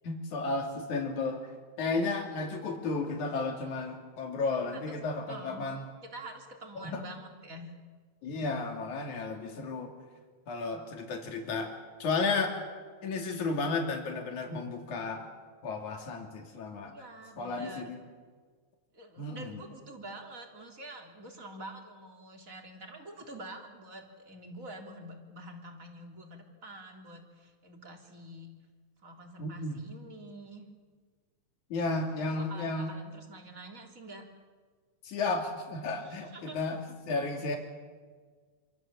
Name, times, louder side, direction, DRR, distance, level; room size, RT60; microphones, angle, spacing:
voice 1, 0.0-1.5 1.8-5.8 6.8-7.0 8.2-9.9 10.5-11.7 12.0-12.6 13.0-15.3 15.6-16.9 17.4-18.0 19.2-19.6 29.4-29.8 31.7-32.9 35.0-37.6, left 3 dB, 80° left, 2 dB, 4.3 m, -33 dB
voice 2, 5.3-5.7 6.1-7.8 16.8-17.8 18.9-28.5 29.0-30.7 32.1-34.2 35.9-37.0, right 1 dB, 25° right, 2 dB, 3.7 m, -47 dB
27.5 x 26.0 x 7.7 m, 1.5 s
omnidirectional pair, 3.4 m